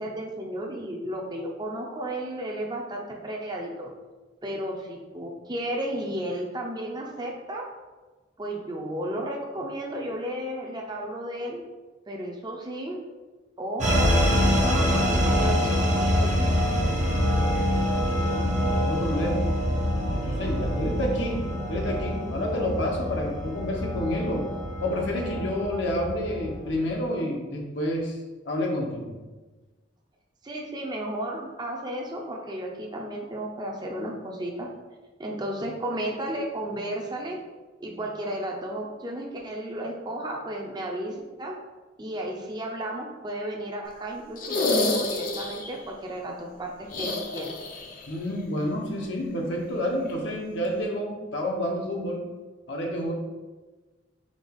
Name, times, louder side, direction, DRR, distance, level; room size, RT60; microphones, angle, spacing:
voice 1, 0.0-3.9 4.4-7.6 8.4-11.6 12.1-13.0 13.6-16.3 30.4-34.7 35.2-37.4 37.8-41.6 42.0-47.5, right 1 dB, 25° right, 0 dB, 0.5 m, -33 dB
sound 1, 13.8-26.8, equal, 40° right, 0.8 m, -25 dB
voice 2, 18.2-19.5 20.1-21.4 21.7-24.4 24.8-28.2 28.5-29.1 48.1-52.3 52.7-53.1, left 1 dB, 75° left, 0 dB, 0.8 m, -29 dB
sound 2, 44.4-45.8 46.9-48.1 48.3-48.4 50.1-50.2, left 2 dB, 45° left, 0.5 m, -28 dB
5.1 x 2.3 x 3.4 m, 1.3 s
head